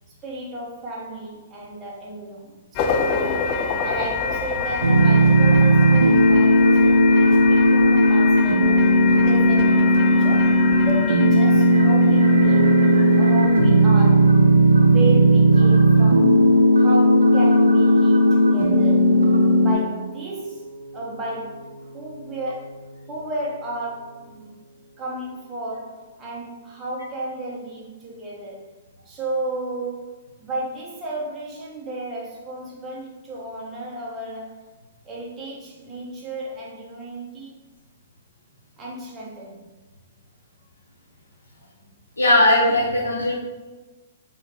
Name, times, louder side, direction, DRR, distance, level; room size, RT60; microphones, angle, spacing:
voice 1, 0.2-3.5 3.8-8.8 9.2-12.7 13.1-14.4 14.8-16.4 16.8-19.2 19.6-20.6 20.9-21.7 21.9-22.8 23.1-24.5 25.0-28.7 29.0-34.6 35.0-37.5 38.8-39.7, right 2 dB, 20° right, -4 dB, 1.0 m, -33 dB
sound 1, 2.8-13.9, left 5 dB, 40° left, 0.4 m, -28 dB
sound 2, 4.8-19.7, right 1 dB, 85° right, 0.4 m, -15 dB
Piano, 12.4-24.7, right 1 dB, 65° left, 1.2 m, -34 dB
voice 2, 42.2-43.3, left 1 dB, 90° left, -4 dB, 0.5 m, -18 dB
3.7 x 2.1 x 2.9 m, 1.2 s
figure-of-eight pair, 115°, 0 cm